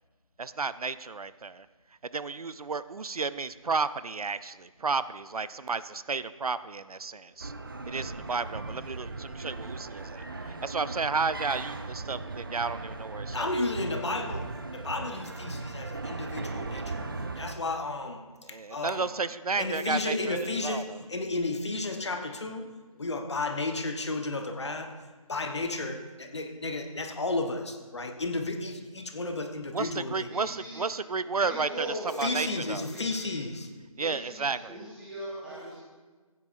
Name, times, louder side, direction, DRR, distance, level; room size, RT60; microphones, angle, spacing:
voice 1, 0.4-1.7 2.0-7.5 7.9-13.5 18.4-21.0 29.7-31.9 32.2-32.9 34.0-34.8, right 4 dB, 90° right, 15 dB, 0.5 m, -32 dB
sound 1, 7.4-17.5, right 3 dB, 35° right, 0.6 m, -38 dB
voice 2, 13.3-17.1 17.4-19.1 19.6-22.7 23.0-24.9 25.3-30.3 32.2-33.7, left 2 dB, 50° left, 5 dB, 1.0 m, -33 dB
voice 3, 30.3-31.0 31.4-33.4 33.9-35.8, equal, 5° right, -8 dB, 1.3 m, -40 dB
16.0 x 9.5 x 2.6 m, 1.3 s
figure-of-eight pair, 165°, 18 cm